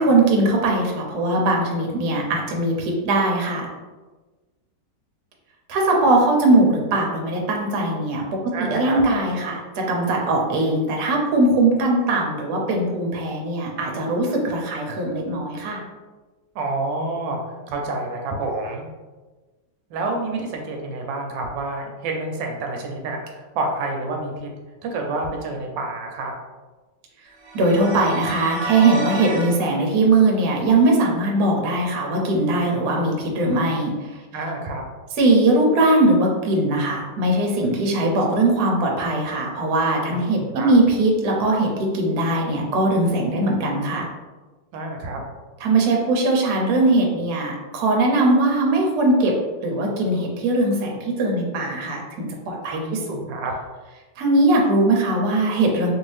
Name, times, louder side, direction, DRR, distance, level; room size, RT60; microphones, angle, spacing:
voice 1, 0.0-3.7 5.7-8.2 8.6-15.8 27.5-34.2 35.2-44.1 45.6-49.4 49.6-53.0 54.2-55.9, right 2 dB, 70° right, 0 dB, 1.1 m, -20 dB
voice 2, 8.5-9.0 16.5-17.4 17.7-18.9 19.9-24.5 24.9-26.3 34.3-34.8 40.1-40.7 44.7-45.2 52.7-53.5, right 2 dB, 85° right, 2 dB, 1.3 m, -28 dB
sound 1, 27.4-29.6, right 1 dB, 50° right, 0.5 m, -30 dB
2.9 x 2.6 x 3.2 m, 1.3 s
omnidirectional pair, 1.9 m